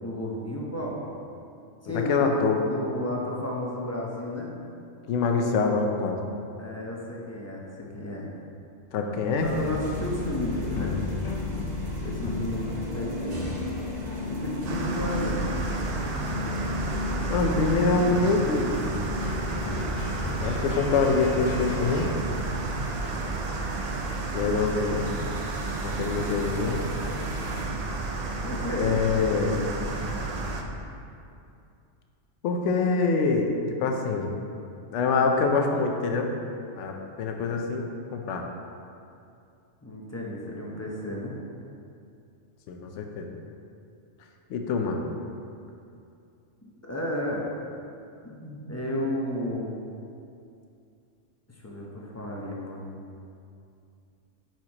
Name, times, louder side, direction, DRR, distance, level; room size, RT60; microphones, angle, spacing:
voice 1, 0.0-1.0 1.8-4.5 6.6-8.3 9.4-11.0 12.0-13.4 14.3-15.4 28.4-28.9 39.8-41.4 46.6-47.5 48.2-49.7 51.5-52.9, left 1 dB, 15° left, -3 dB, 0.6 m, -33 dB
voice 2, 1.9-2.6 5.1-6.3 8.9-9.5 17.3-18.7 20.4-22.1 24.3-25.1 25.9-26.8 28.8-29.6 32.4-33.5 33.8-34.3 34.9-36.3 36.8-38.4 42.7-43.3 44.5-45.0, left 4 dB, 70° left, 3 dB, 0.9 m, -25 dB
sound 1, 9.4-22.1, left 3 dB, 85° left, 0.3 m, -33 dB
sound 2, 9.4-27.7, right 2 dB, 40° right, 0.7 m, -45 dB
sound 3, 14.6-30.6, right 3 dB, 60° right, 0.4 m, -31 dB
9.1 x 4.5 x 2.9 m, 2.5 s
omnidirectional pair, 1.3 m